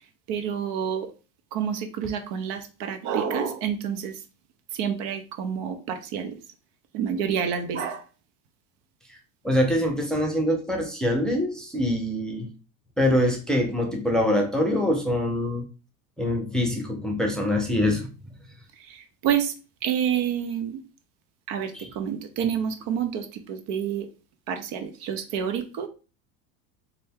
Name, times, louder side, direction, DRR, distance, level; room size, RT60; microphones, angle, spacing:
voice 1, 0.3-1.1 1.5-4.2 4.7-6.4 6.9-8.0 18.7-19.5 19.8-20.8 21.5-24.1 24.5-25.9, right 8 dB, 60° right, 8 dB, 0.8 m, -28 dB
voice 2, 9.4-12.5 13.0-15.6 16.2-18.1 21.7-21.8, left 1 dB, ahead, 1 dB, 0.7 m, -24 dB
4.0 x 2.3 x 3.6 m, 0.33 s
supercardioid pair, 100°, 48 cm